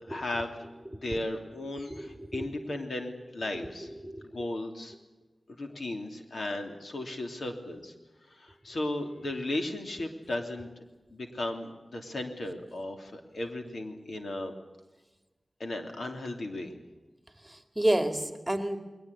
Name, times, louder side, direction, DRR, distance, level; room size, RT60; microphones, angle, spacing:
voice 1, 0.1-0.5 0.9-3.9 4.2-4.9 5.6-7.9 8.3-10.8 11.1-14.5 15.6-16.7, left 1 dB, 80° left, 4 dB, 3.0 m, -35 dB
voice 2, 0.9-1.2 1.9-2.7 3.6-4.3 17.4-18.8, right 1 dB, 10° right, 8 dB, 2.4 m, -31 dB
21.5 x 19.0 x 10.0 m, 1.1 s
wide cardioid pair, 65°, 0 cm